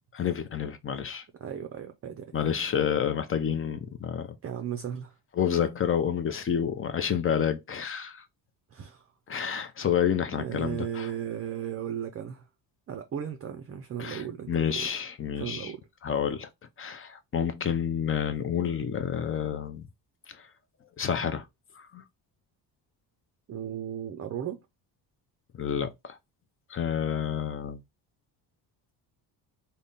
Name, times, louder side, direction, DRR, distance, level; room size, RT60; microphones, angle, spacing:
voice 1, 0.1-1.2 2.3-4.3 5.4-8.2 9.3-11.1 14.0-15.7 16.0-16.5 16.8-19.9 20.3-20.4 21.0-21.5 21.8-22.0 25.5-26.2 26.7-27.8, left 8 dB, 30° left, 0.5 m, -29 dB
voice 2, 1.4-2.3 4.4-5.1 8.7-9.1 10.4-12.4 12.9-14.9 15.4-15.8 23.5-24.6, right 9 dB, 35° right, 0.5 m, -36 dB
3.5 x 2.2 x 3.9 m
cardioid pair, 115°, 43 cm